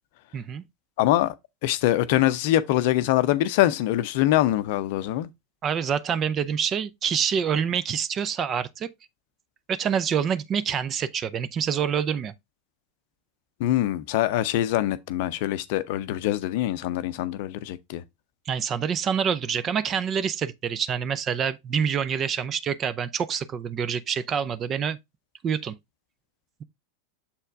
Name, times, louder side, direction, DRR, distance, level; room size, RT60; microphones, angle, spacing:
voice 1, 0.3-0.6 5.6-8.9 9.7-12.3 18.5-25.0 25.4-25.8, right 7 dB, 30° right, 0.6 m, -26 dB
voice 2, 1.0-1.3 1.6-5.3 13.6-18.0, left 14 dB, 50° left, 0.6 m, -24 dB
7.1 x 4.4 x 3.3 m
figure-of-eight pair, 85°, 0 cm